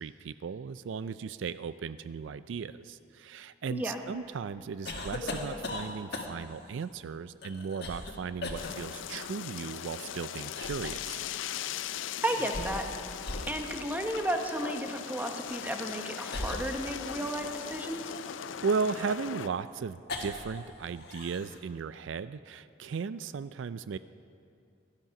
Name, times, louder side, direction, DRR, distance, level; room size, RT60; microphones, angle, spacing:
voice 1, 0.0-11.2 18.6-24.0, right 5 dB, 80° right, 14 dB, 0.4 m, -36 dB
voice 2, 3.7-4.0 12.2-12.8 13.5-18.2, right 1 dB, 10° right, 3 dB, 1.1 m, -33 dB
sound 1, 4.9-6.6 7.4-8.1 8.4-8.7 9.9-10.9 12.3-13.0 13.2-13.5 14.1-14.3 15.4-15.6 16.3-17.5 18.1-20.6 20.9-21.6, left 2 dB, 55° left, 1.7 m, -39 dB
sound 2, 8.5-19.5, left 9 dB, 80° left, 0.4 m, -39 dB
17.0 x 12.0 x 5.9 m, 2.5 s
head